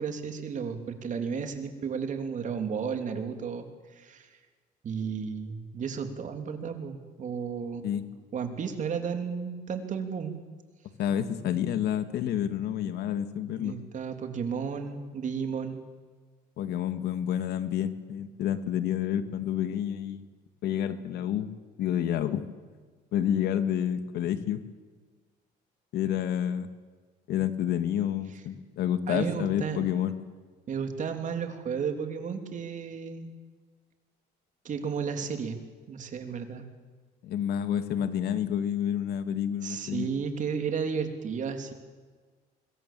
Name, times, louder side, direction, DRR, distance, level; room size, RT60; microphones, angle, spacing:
voice 1, 0.0-3.7 3.9-4.3 4.8-7.9 8.3-10.4 13.6-15.8 29.1-29.9 30.7-33.3 34.6-35.6 35.9-36.7 39.6-41.7, right 6 dB, 45° right, 6 dB, 3.2 m, -33 dB
voice 2, 11.0-13.8 16.6-20.3 20.6-21.5 21.8-22.4 23.1-24.6 25.9-26.7 27.3-30.1 37.2-40.1, left 10 dB, 75° left, 10 dB, 1.8 m, -29 dB
25.0 x 22.0 x 7.5 m, 1.5 s
cardioid pair, 110°, 17 cm